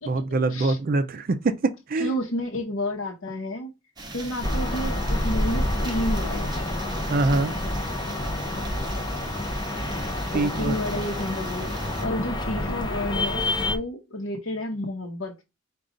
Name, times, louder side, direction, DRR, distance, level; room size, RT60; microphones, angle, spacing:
voice 1, 0.1-2.1 7.1-7.5 10.3-10.7, right 3 dB, 45° right, 0.4 m, -24 dB
voice 2, 2.0-3.7 4.1-6.6 10.3-15.4, left 1 dB, 75° left, 0.8 m, -31 dB
sound 1, 4.0-12.1, right 2 dB, 20° right, 0.7 m, -39 dB
sound 2, 4.4-13.8, left 1 dB, 20° left, 0.7 m, -28 dB
5.0 x 2.3 x 3.8 m
head